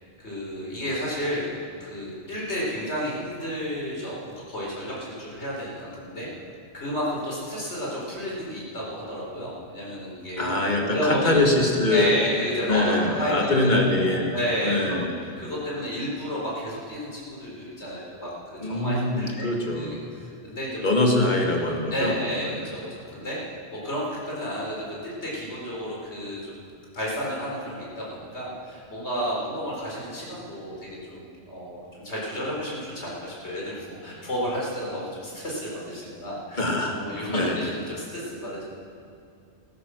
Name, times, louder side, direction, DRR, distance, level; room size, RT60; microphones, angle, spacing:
voice 1, 0.2-1.5 1.8-6.3 6.7-10.5 10.8-11.4 11.9-13.7 14.0-14.8 15.4-18.3 18.6-20.9 21.9-22.9 23.1-23.4 23.7-26.6 26.9-38.6, equal, 80° left, -4 dB, 4.5 m, -31 dB
voice 2, 10.4-12.1 12.7-14.3 14.6-15.1 18.6-20.0 20.8-22.2 36.6-37.0 37.3-37.6, left 2 dB, 45° left, 1 dB, 2.2 m, -23 dB
16.0 x 13.5 x 6.4 m, 2.5 s
omnidirectional pair, 1.1 m